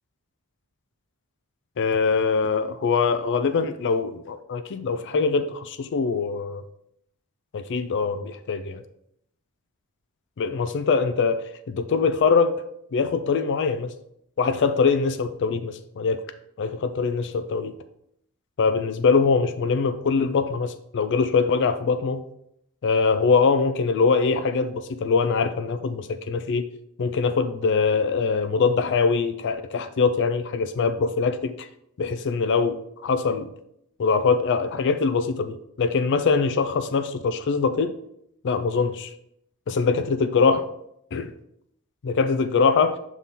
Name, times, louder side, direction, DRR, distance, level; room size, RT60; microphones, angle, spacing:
voice 1, 1.8-6.6 7.5-8.8 10.4-11.4 11.7-12.6 12.9-13.9 14.4-16.2 16.6-17.7 18.6-22.2 22.8-26.7 27.0-31.7 32.0-33.5 34.0-37.9 38.4-39.1 39.7-40.6 41.1-41.3 42.0-43.0, left 5 dB, 55° left, 10 dB, 0.4 m, -23 dB
7.4 x 3.6 x 4.1 m, 0.74 s
head